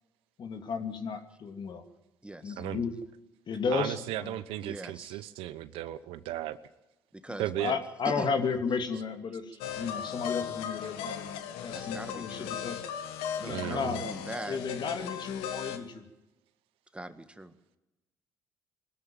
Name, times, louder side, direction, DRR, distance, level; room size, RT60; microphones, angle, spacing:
voice 1, 0.4-1.8 2.4-2.9 3.5-4.4 7.3-11.3 11.6-12.8 13.4-14.0 14.5-16.1, left 5 dB, 55° left, 6 dB, 2.6 m, -33 dB
voice 2, 2.2-2.6 4.6-5.2 7.1-8.3 11.7-12.5 13.4-14.6 16.9-17.5, right 1 dB, 10° right, 10 dB, 1.8 m, -42 dB
voice 3, 3.7-6.6 7.4-7.7 13.5-14.0, right 14 dB, 80° right, 14 dB, 0.9 m, -35 dB
sound 1, 9.6-15.8, left 8 dB, 85° left, 1.5 m, -37 dB
21.5 x 13.0 x 9.2 m, 1.0 s
supercardioid pair, 60°, 9 cm